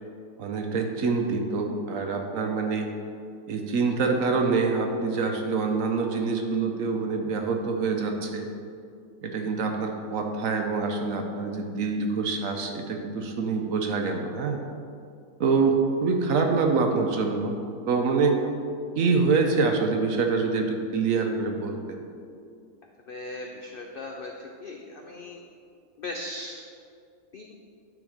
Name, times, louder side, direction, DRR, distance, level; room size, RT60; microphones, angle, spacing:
voice 1, 0.4-2.9 3.5-8.5 9.2-14.6 15.4-17.6 17.9-18.4 19.0-22.0, right 4 dB, 65° right, 3 dB, 1.1 m, -25 dB
voice 2, 23.1-25.4 26.0-26.6 27.3-27.4, left 2 dB, 75° left, 2 dB, 0.5 m, -38 dB
9.8 x 4.0 x 5.0 m, 2.4 s
omnidirectional pair, 1.7 m